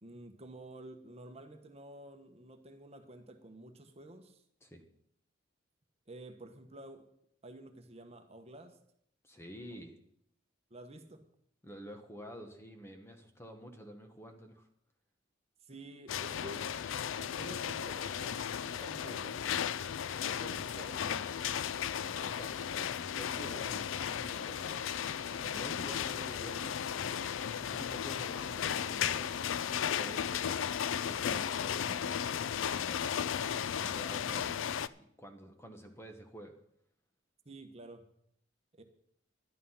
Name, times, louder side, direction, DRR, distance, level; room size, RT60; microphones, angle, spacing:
voice 1, 0.0-4.4 6.1-7.1 7.4-8.8 10.7-11.2 15.6-16.7 17.2-19.6 20.2-21.4 37.4-38.1 38.7-38.8, right 1 dB, 35° right, 6 dB, 1.2 m, -50 dB
voice 2, 9.2-10.0 11.6-14.7 22.1-25.0 25.4-32.2 32.7-34.7 35.0-36.6, equal, 15° left, 5 dB, 1.1 m, -49 dB
sound 1, 16.1-34.9, left 8 dB, 90° left, 0.4 m, -35 dB
sound 2, 20.1-29.9, equal, 50° left, 3.3 m, -59 dB
12.0 x 10.5 x 5.7 m, 0.71 s
head